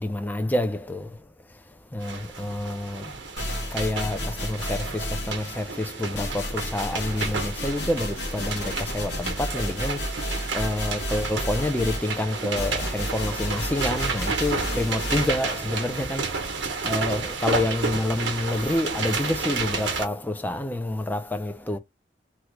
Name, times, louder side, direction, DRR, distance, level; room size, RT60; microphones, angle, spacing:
voice 1, 0.0-1.1 1.9-3.0 3.7-10.0 10.5-16.3 16.8-21.8, left 1 dB, 10° left, 0.5 m, -28 dB
sound 1, 2.0-20.0, right 4 dB, 80° right, 0.9 m, -31 dB
sound 2, 3.4-5.7 6.1-15.6, left 1 dB, 70° left, 1.0 m, -32 dB
3.1 x 2.4 x 3.0 m
head